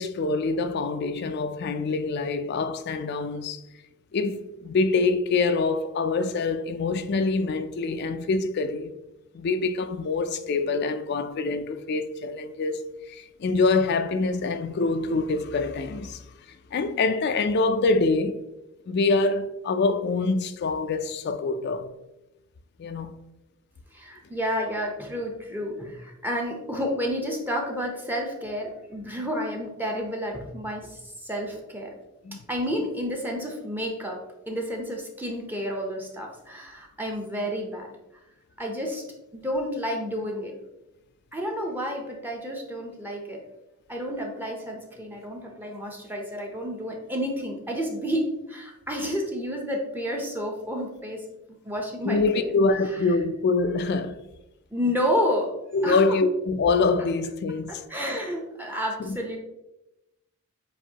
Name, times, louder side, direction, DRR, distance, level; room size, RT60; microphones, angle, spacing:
voice 1, 0.0-3.6 4.1-8.9 9.3-16.2 16.7-18.4 18.9-21.9 22.8-23.2 32.2-32.4 52.0-54.2 55.7-57.7 59.0-59.2, left 3 dB, 50° left, 0.3 m, -25 dB
voice 2, 23.9-31.9 32.5-34.2 34.5-37.9 38.6-39.0 39.3-40.5 41.3-43.4 43.9-51.2 51.6-52.5 54.7-55.5 55.8-56.2 57.7-59.4, equal, 10° right, 0.7 m, -30 dB
7.3 x 2.6 x 2.8 m
head